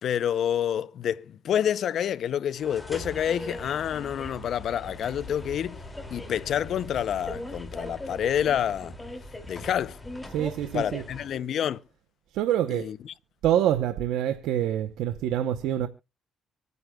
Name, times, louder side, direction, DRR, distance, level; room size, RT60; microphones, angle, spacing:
voice 1, 0.0-5.8 6.1-9.0 9.5-10.0 10.7-11.8 12.7-13.1, left 9 dB, 65° left, 0.5 m, -28 dB
sound 1, 2.6-11.4, left 1 dB, 15° left, 2.4 m, -40 dB
voice 2, 10.3-11.0 12.3-12.9 13.4-15.9, right 11 dB, 90° right, 0.7 m, -26 dB
25.0 x 9.4 x 2.2 m
cardioid pair, 90°, 0 cm